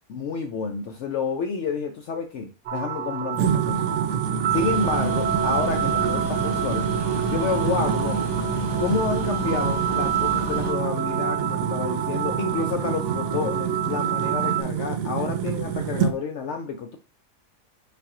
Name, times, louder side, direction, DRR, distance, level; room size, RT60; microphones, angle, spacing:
voice 1, 0.1-4.1 4.5-6.9 7.3-8.2 8.8-17.0, left 5 dB, 65° left, 4 dB, 0.8 m, -29 dB
sound 1, 2.7-14.6, right 9 dB, 55° right, 0.8 m, -28 dB
sound 2, 3.3-16.2, right 7 dB, 80° right, 1.0 m, -27 dB
sound 3, 4.5-10.7, left 1 dB, 25° left, 0.8 m, -35 dB
5.7 x 2.5 x 3.7 m, 0.32 s
omnidirectional pair, 1.4 m